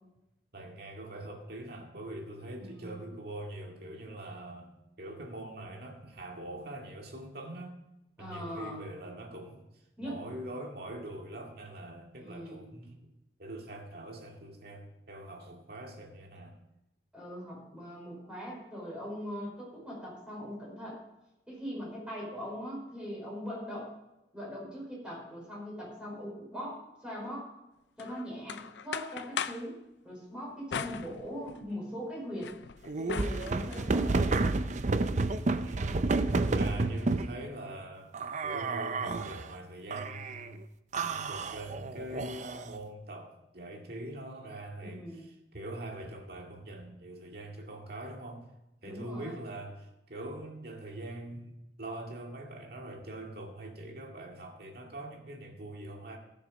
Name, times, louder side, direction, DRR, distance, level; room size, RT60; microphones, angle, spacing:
voice 1, 0.5-7.8 8.2-13.0 13.4-16.6 35.6-36.0 36.5-38.2 38.4-40.6 41.1-48.5 48.8-51.5 51.8-56.2, right 1 dB, 60° right, 1 dB, 2.1 m, -43 dB
voice 2, 2.6-3.0 8.2-8.8 10.0-10.2 12.2-12.7 17.1-21.0 21.5-23.9 24.3-27.5 28.0-29.8 30.0-32.5 33.0-34.3 36.3-36.8 44.8-45.2 48.8-49.5, equal, 5° right, -5 dB, 5.0 m, -41 dB
sound 1, 28.0-29.7 30.7-31.8 32.2-33.9, left 7 dB, 70° left, 0.5 m, -39 dB
sound 2, 32.9-37.3 38.1-39.4 39.9-40.5 40.9-42.8, right 3 dB, 40° right, 0.5 m, -30 dB
16.0 x 6.7 x 5.1 m, 0.92 s
head